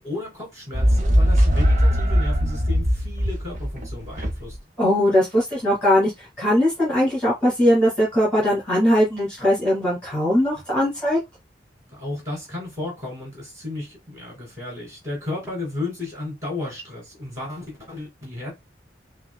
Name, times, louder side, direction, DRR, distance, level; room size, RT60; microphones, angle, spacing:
voice 1, 0.0-4.6 11.9-18.5, left 2 dB, 15° right, 2.7 m, -33 dB
sound 1, 0.7-4.6, equal, 40° right, 0.8 m, -20 dB
voice 2, 4.8-11.2, equal, 5° left, 2.2 m, -20 dB
5.9 x 2.3 x 2.3 m
head